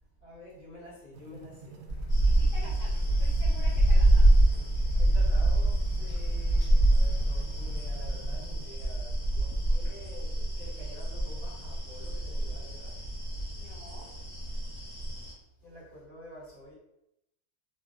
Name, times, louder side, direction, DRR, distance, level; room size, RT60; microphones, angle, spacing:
voice 1, 0.2-1.9 5.0-13.0 15.6-16.7, left 1 dB, 40° left, -10 dB, 1.6 m, -49 dB
sound 1, 1.1-8.7, right 4 dB, 85° right, 1.1 m, -48 dB
sound 2, 1.9-8.0, left 1 dB, 85° left, 1.2 m, -36 dB
sound 3, 2.1-15.3, right 1 dB, 60° left, 1.8 m, -26 dB
voice 2, 2.2-4.3 13.5-14.2, equal, ahead, -13 dB, 1.1 m, -49 dB
3.2 x 2.6 x 2.5 m, 0.82 s
omnidirectional pair, 1.6 m